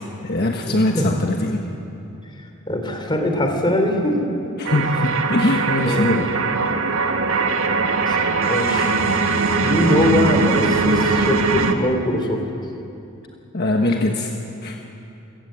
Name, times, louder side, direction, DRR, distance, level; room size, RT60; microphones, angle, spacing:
voice 1, 0.0-1.6 4.6-6.3 13.5-14.3 14.6-14.8, left 1 dB, 50° left, 2 dB, 1.4 m, -21 dB
voice 2, 0.6-1.3 2.7-4.1 4.4-4.9 5.8-6.1 8.0-8.9 9.6-12.4, left 1 dB, 20° left, 4 dB, 3.1 m, -22 dB
sound 1, 4.6-11.7, right 4 dB, 75° right, 1.7 m, -20 dB
28.5 x 17.0 x 8.7 m, 2.8 s
head